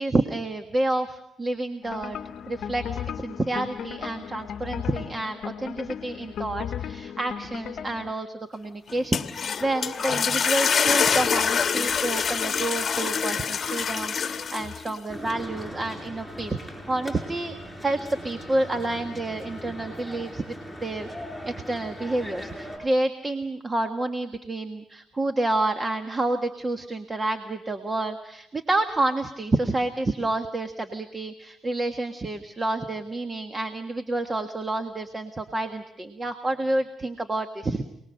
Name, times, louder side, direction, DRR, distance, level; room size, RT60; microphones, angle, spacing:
voice 1, 0.0-2.2 2.5-16.6 16.9-17.5 17.8-20.5 20.8-21.1 21.4-37.8, right 2 dB, 25° right, 6 dB, 1.5 m, -29 dB
sound 1, 1.8-8.1, left 8 dB, 65° left, 0.9 m, -35 dB
sound 2, 8.9-14.9, left 6 dB, 45° left, 1.2 m, -25 dB
sound 3, 15.1-22.8, equal, 10° right, 7.7 m, -39 dB
28.5 x 20.0 x 6.5 m, 0.80 s
cardioid pair, 90°, 0 cm